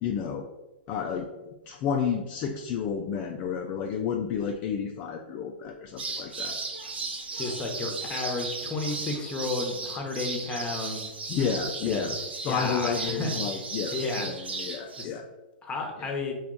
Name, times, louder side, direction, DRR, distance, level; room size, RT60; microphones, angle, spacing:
voice 1, 0.0-0.5 0.9-1.3 1.7-6.6 11.3-12.2 12.4-15.3 16.0-16.1, left 7 dB, 35° left, 2 dB, 0.3 m, -31 dB
sound 1, 6.0-15.0, right 3 dB, 85° right, 0.6 m, -35 dB
voice 2, 7.4-11.0 11.9-12.1 12.5-13.4 13.9-14.3 15.0-15.2 15.6-16.3, left 3 dB, 20° left, 2 dB, 0.8 m, -32 dB
4.5 x 2.3 x 3.8 m, 1.1 s
hypercardioid pair, 120°, 6 cm